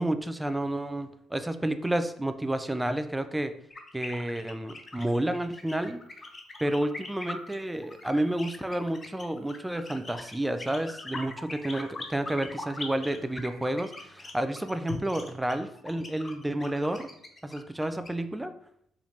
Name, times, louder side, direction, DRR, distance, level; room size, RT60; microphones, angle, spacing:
voice 1, 0.0-3.5 3.9-6.0 6.6-17.1 17.4-18.5, right 1 dB, 10° right, 9 dB, 0.4 m, -30 dB
sound 1, 1.3-1.4 4.8-15.0, left 5 dB, 55° left, 0.5 m, -53 dB
sound 2, 3.7-18.1, left 2 dB, 30° left, 0.8 m, -42 dB
4.5 x 3.6 x 2.8 m, 0.71 s
hypercardioid pair, 50°, 0 cm